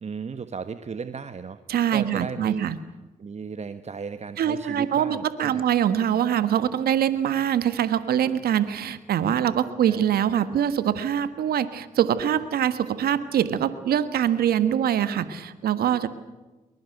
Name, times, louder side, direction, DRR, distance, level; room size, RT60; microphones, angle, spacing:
voice 1, 0.0-1.6 1.9-2.7 3.2-5.6 9.9-10.0, right 5 dB, 45° right, 11 dB, 1.3 m, -35 dB
voice 2, 1.7-2.7 4.4-16.1, right 9 dB, 70° right, 13 dB, 1.5 m, -24 dB
23.0 x 21.5 x 8.0 m, 1.2 s
hypercardioid pair, 45°, 16 cm